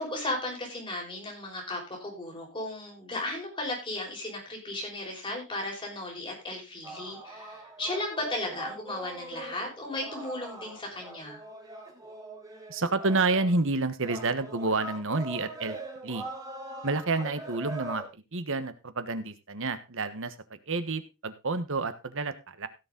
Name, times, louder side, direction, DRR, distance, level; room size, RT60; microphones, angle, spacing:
voice 1, 0.0-11.4, left 2 dB, 25° left, 0 dB, 5.5 m, -35 dB
sound 1, 6.8-13.6 14.0-18.1, right 2 dB, 20° right, 3.5 m, -42 dB
voice 2, 12.7-15.8 16.0-16.2 16.8-22.7, right 3 dB, 65° right, 12 dB, 1.3 m, -29 dB
16.5 x 7.1 x 3.9 m, 0.27 s
head